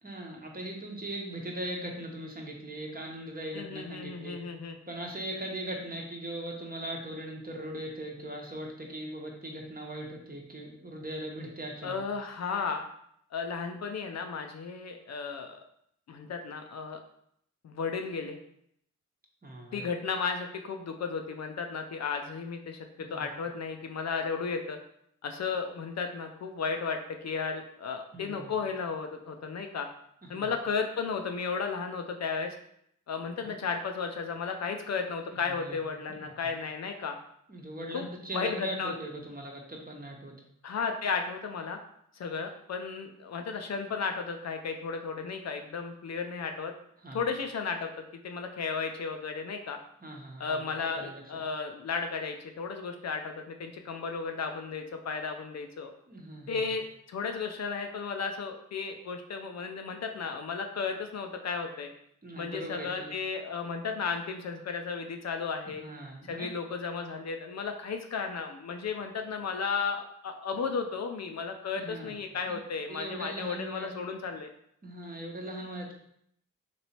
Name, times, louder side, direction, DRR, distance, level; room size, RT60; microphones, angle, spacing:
voice 1, 0.0-4.4 4.9-12.0 19.4-19.9 23.0-23.3 28.1-28.5 30.2-30.5 33.4-33.6 35.3-35.8 36.2-36.3 37.5-40.3 47.0-47.2 50.0-50.6 50.9-51.2 56.1-56.6 62.2-63.1 65.8-66.5 71.8-72.1 72.5-72.6 72.9-73.9 74.8-76.0, right 1 dB, 25° right, 0 dB, 0.9 m, -40 dB
voice 2, 3.5-4.8 11.8-12.9 13.3-15.6 16.1-17.0 17.6-18.4 19.7-24.8 25.2-27.0 27.2-29.9 30.3-32.6 33.1-37.2 37.9-38.1 38.3-38.9 40.6-41.8 42.1-46.7 47.1-47.9 48.2-49.8 50.4-55.9 56.5-61.9 62.4-65.8 66.3-74.5, left 5 dB, 55° left, 5 dB, 0.4 m, -34 dB
3.0 x 2.9 x 2.8 m, 0.71 s
supercardioid pair, 40°, 32 cm